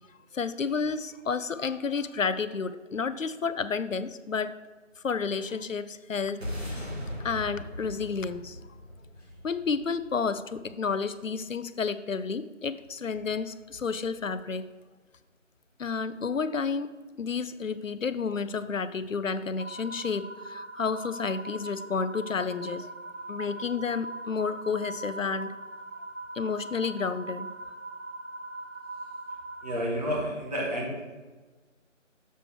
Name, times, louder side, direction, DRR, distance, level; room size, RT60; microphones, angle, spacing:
voice 1, 0.3-4.5 5.0-6.8 7.2-8.6 9.4-14.6 15.8-16.9 17.2-22.9 23.3-25.5 26.3-27.5, left 5 dB, 85° left, 13 dB, 0.6 m, -31 dB
sound 1, 6.4-10.9, left 1 dB, 50° right, 2.6 m, -39 dB
sound 2, 19.6-29.7, right 2 dB, 85° right, 1.1 m, -41 dB
voice 2, 29.6-31.1, equal, 30° right, -4 dB, 2.0 m, -30 dB
6.9 x 4.4 x 6.2 m, 1.3 s
figure-of-eight pair, 165°, 38 cm